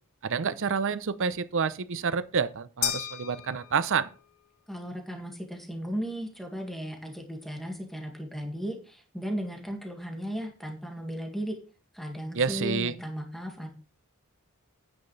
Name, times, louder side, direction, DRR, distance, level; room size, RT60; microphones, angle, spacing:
voice 1, 0.2-4.1 12.3-12.9, right 5 dB, 60° right, 0.7 m, -28 dB
sound 1, 2.8-4.3, left 11 dB, 75° left, 0.8 m, -34 dB
voice 2, 4.7-11.6 11.9-13.7, equal, ahead, 2.0 m, -36 dB
9.6 x 9.2 x 3.3 m
head